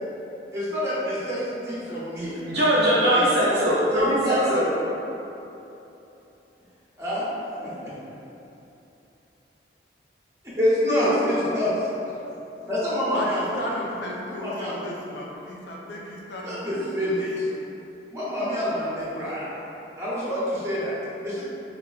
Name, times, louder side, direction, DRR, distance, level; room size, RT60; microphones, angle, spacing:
voice 1, 0.5-2.4 3.0-3.2 3.9-4.6 7.0-7.2 7.6-7.9 10.6-11.7 12.6-13.5 14.4-14.9 16.4-17.5 18.1-19.5 20.0-21.4, equal, 15° right, -9 dB, 0.9 m, -26 dB
voice 2, 1.9-2.4 13.1-17.2, left 1 dB, 70° left, -2 dB, 0.4 m, -35 dB
voice 3, 2.5-4.8, equal, 65° right, -8 dB, 0.6 m, -21 dB
4.6 x 2.4 x 2.3 m, 3.0 s
head